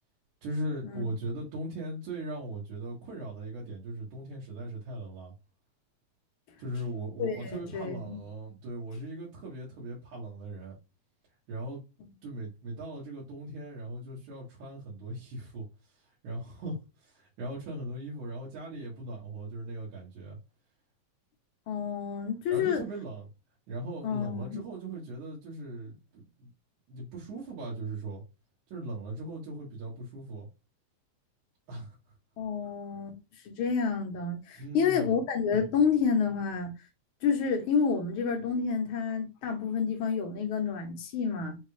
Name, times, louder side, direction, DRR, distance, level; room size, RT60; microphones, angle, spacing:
voice 1, 0.4-5.3 6.6-10.8 11.5-11.8 12.2-20.4 22.5-23.3 23.7-26.5 26.9-28.2 28.7-30.5 31.7-32.0 34.6-35.2, right 1 dB, 85° right, 2.8 m, -39 dB
voice 2, 7.2-8.2 21.7-22.8 24.0-24.6 32.4-33.2 33.5-36.7 37.2-41.6, left 6 dB, 65° left, 1.3 m, -29 dB
5.6 x 2.3 x 3.2 m
omnidirectional pair, 3.4 m